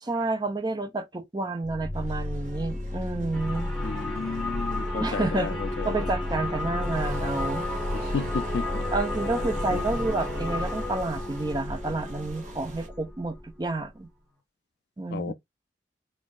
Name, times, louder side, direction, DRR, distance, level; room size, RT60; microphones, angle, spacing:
voice 1, 0.0-3.7 5.0-5.6 5.8-7.6 8.9-14.1 15.0-15.3, right 2 dB, 20° right, 0.6 m, -30 dB
sound 1, 1.6-13.9, left 1 dB, 25° left, 0.8 m, -33 dB
sound 2, 1.9-12.9, right 2 dB, 40° right, 0.9 m, -47 dB
sound 3, 3.3-13.0, left 2 dB, ahead, 1.4 m, -35 dB
voice 2, 3.8-6.1 7.9-8.9 9.7-9.8 15.1-15.3, left 5 dB, 60° left, 0.3 m, -33 dB
5.3 x 2.5 x 2.4 m
head